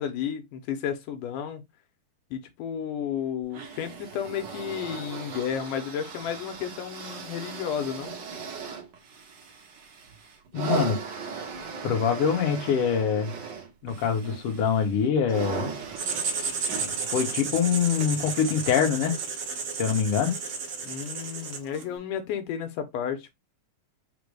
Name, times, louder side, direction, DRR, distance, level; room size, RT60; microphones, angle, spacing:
voice 1, 0.0-1.6 2.3-8.1 20.8-23.3, left 8 dB, 80° left, 2.3 m, -32 dB
sound 1, 3.5-19.0 19.8-19.9, right 6 dB, 80° right, 1.0 m, -38 dB
voice 2, 10.5-11.0 11.8-13.3 13.8-15.8 17.1-19.2 19.8-20.3, left 7 dB, 60° left, 1.7 m, -24 dB
Writing, 16.0-21.9, right 5 dB, 65° right, 1.3 m, -32 dB
5.2 x 2.1 x 4.7 m
omnidirectional pair, 3.7 m